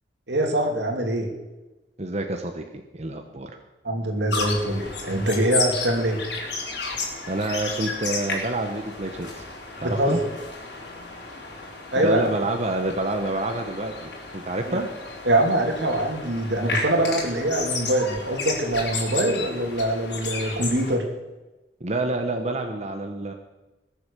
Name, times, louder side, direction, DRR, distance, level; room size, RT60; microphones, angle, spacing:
voice 1, 0.3-1.3 3.8-6.2 9.8-10.3 11.9-12.3 14.7-14.8 15.2-21.1, right 1 dB, 80° right, 3 dB, 2.9 m, -24 dB
voice 2, 2.0-3.5 6.9-9.4 9.8-10.2 11.9-14.9 21.8-23.3, right 2 dB, 40° right, 4 dB, 1.2 m, -28 dB
sound 1, 4.3-21.0, left 3 dB, 70° left, 4.4 m, -33 dB
21.0 x 8.0 x 6.9 m, 1.1 s
head